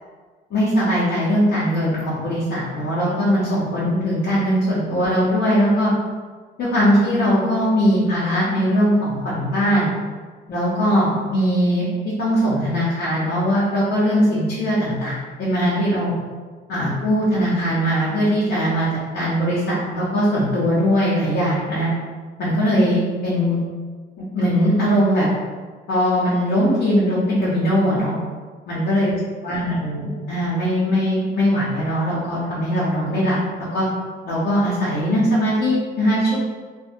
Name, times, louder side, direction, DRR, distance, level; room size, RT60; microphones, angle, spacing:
voice 1, 0.5-5.9 6.6-9.9 10.5-11.9 12.2-16.1 16.7-18.9 19.1-21.9 22.4-23.6 24.2-25.3 25.9-28.1 28.7-29.1 29.4-33.4 33.7-33.8 34.2-36.4, equal, 65° left, -9 dB, 0.8 m, -20 dB
2.5 x 2.1 x 2.5 m, 1.5 s
cardioid pair, 90°, 20 cm